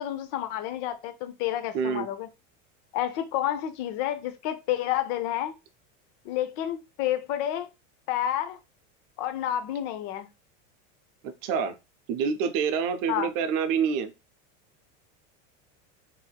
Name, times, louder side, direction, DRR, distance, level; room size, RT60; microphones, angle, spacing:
voice 1, 0.0-2.3 2.9-5.5 6.2-7.7 8.1-8.6 9.2-10.3 13.1-13.3, left 12 dB, 60° left, 0.6 m, -29 dB
voice 2, 1.7-2.1 11.2-11.7 12.1-14.1, right 6 dB, 55° right, 0.6 m, -27 dB
3.3 x 2.7 x 2.2 m
supercardioid pair, 110°, 39 cm